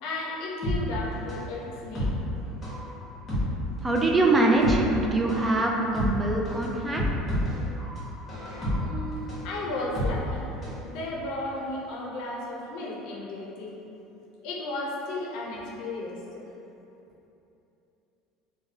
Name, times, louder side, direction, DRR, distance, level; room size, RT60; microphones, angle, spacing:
voice 1, 0.0-2.1 8.8-10.5 10.8-13.7 14.4-16.4, left 2 dB, 70° left, -3 dB, 0.5 m, -34 dB
sound 1, 0.6-10.8 11.1-11.2, equal, 25° left, 1.1 m, -30 dB
voice 2, 3.8-7.1, right 2 dB, 20° right, 0 dB, 0.3 m, -23 dB
3.0 x 2.1 x 2.7 m, 2.9 s
supercardioid pair, 100°, 0 cm